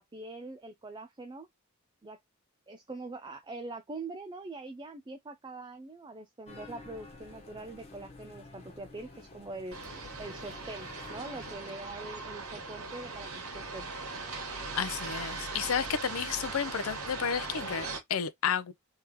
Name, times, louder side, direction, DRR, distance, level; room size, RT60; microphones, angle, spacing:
voice 1, 0.0-1.5 2.0-2.2 2.7-9.8 10.2-13.9, right 2 dB, 20° right, 0.5 m, -43 dB
sound 1, 6.5-11.6, left 2 dB, 30° left, 1.3 m, -50 dB
sound 2, 9.7-18.0, right 3 dB, 85° right, 1.9 m, -39 dB
voice 2, 14.7-18.7, left 7 dB, 75° left, 0.5 m, -32 dB
3.4 x 3.4 x 3.0 m
head